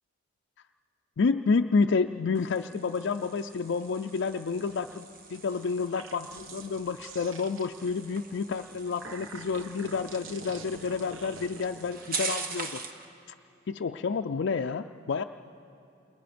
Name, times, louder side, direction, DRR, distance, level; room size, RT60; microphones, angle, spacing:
voice 1, 1.2-12.8 13.7-15.2, left 4 dB, 60° left, 5 dB, 0.4 m, -29 dB
sound 1, 2.3-13.1, right 4 dB, 50° right, 1.3 m, -42 dB
sound 2, 5.8-8.0 8.7-11.7, right 5 dB, 90° right, 1.1 m, -48 dB
29.0 x 21.0 x 5.2 m, 2.9 s
head